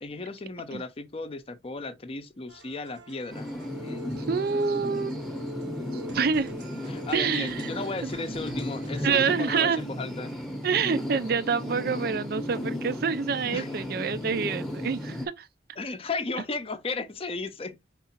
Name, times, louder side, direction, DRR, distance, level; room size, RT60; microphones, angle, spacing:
voice 1, 0.0-4.2 6.9-10.3 13.5-13.7 15.8-17.8, left 3 dB, 30° left, 0.6 m, -35 dB
sound 1, 2.5-9.1, equal, 75° right, 0.8 m, -46 dB
sound 2, 3.3-15.3, left 1 dB, ahead, 0.8 m, -35 dB
voice 2, 4.3-5.1 5.9-6.5 7.1-7.7 8.0-8.1 9.0-9.8 10.6-15.5, right 5 dB, 55° right, 0.4 m, -27 dB
4.7 x 3.7 x 2.9 m
head